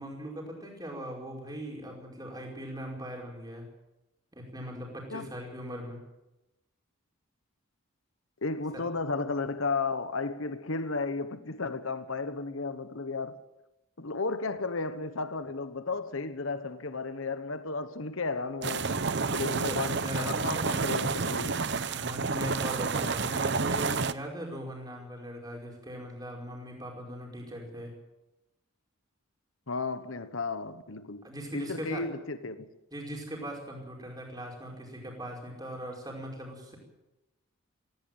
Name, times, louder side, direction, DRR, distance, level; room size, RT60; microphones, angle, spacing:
voice 1, 0.0-3.7 4.3-6.0 8.7-8.8 19.5-20.7 21.9-27.9 31.2-32.1 32.9-36.8, equal, 20° right, 5.1 m, -40 dB
voice 2, 8.4-13.4 14.0-18.9 19.3-21.6 29.7-31.3 31.5-32.7, left 3 dB, 70° left, 1.1 m, -33 dB
sound 1, 18.6-24.1, right 4 dB, 55° right, 0.8 m, -30 dB
17.5 x 16.5 x 9.2 m
head